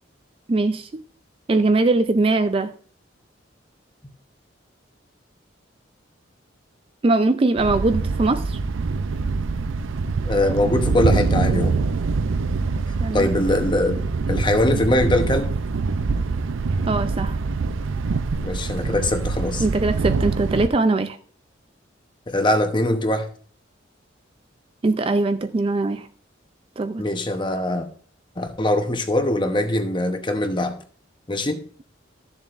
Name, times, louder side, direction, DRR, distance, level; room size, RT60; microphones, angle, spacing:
voice 1, 0.5-1.0 1.5-2.7 7.0-8.6 13.0-13.3 16.9-17.4 19.6-21.2 24.8-26.1 26.8-27.0, right 2 dB, 30° right, 0.4 m, -21 dB
Thunder, 7.6-20.7, right 4 dB, 85° right, 0.5 m, -24 dB
voice 2, 10.2-11.8 13.1-14.0 14.3-15.5 18.4-19.6 22.3-23.3 27.0-27.9 28.4-30.8 31.3-31.6, left 1 dB, 25° left, 0.8 m, -22 dB
14.0 x 7.1 x 2.5 m
head